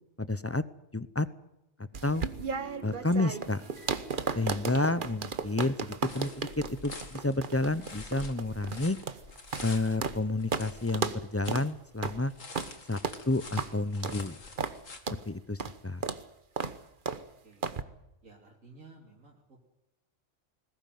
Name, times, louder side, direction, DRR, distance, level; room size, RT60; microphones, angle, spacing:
voice 1, 0.2-0.6 0.9-1.3 2.0-2.3 2.8-3.6 4.3-9.0 9.6-12.3 12.9-13.0 13.3-14.4 15.3-16.0, left 2 dB, 15° left, 15 dB, 0.5 m, -30 dB
sound 1, 1.8-6.4 6.7-7.0, right 1 dB, 40° left, 4.2 m, -53 dB
sound 2, 1.9-10.2 10.5-10.7 10.9-11.2 11.5-11.7 12.0-12.2 12.5-12.7 13.0-13.2 13.6-13.7 14.0-14.2 14.6-14.8 15.1-15.2 15.6-15.8 16.0-16.2 16.6-16.8 17.1-17.2 17.6-17.8, right 5 dB, 40° right, 1.2 m, -34 dB
voice 2, 5.6-6.0 17.1-17.7 18.2-19.6, right 3 dB, 80° right, -1 dB, 3.4 m, -55 dB
sound 3, 6.1-11.7 12.0-15.0, left 3 dB, 75° left, 2.6 m, -47 dB
20.5 x 17.0 x 9.3 m, 0.90 s
omnidirectional pair, 1.3 m